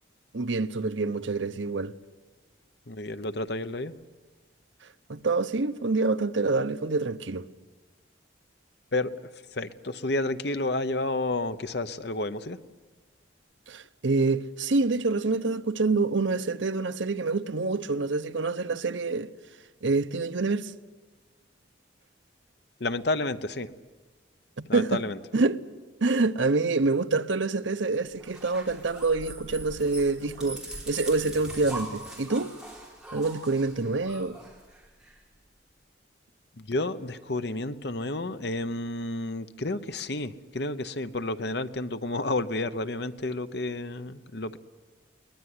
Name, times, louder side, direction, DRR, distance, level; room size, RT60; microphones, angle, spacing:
voice 1, 0.3-1.9 5.1-7.5 13.7-19.3 19.8-20.7 24.6-25.0 25.3-25.6 26.0-32.5 33.1-34.4, right 3 dB, 75° right, 0.8 m, -26 dB
voice 2, 2.9-3.9 8.9-12.6 22.8-23.7 24.7-25.2 36.6-44.6, left 2 dB, 55° left, 1.0 m, -31 dB
sound 1, 28.2-35.1, right 1 dB, 5° right, 4.0 m, -42 dB
22.5 x 19.5 x 9.7 m
head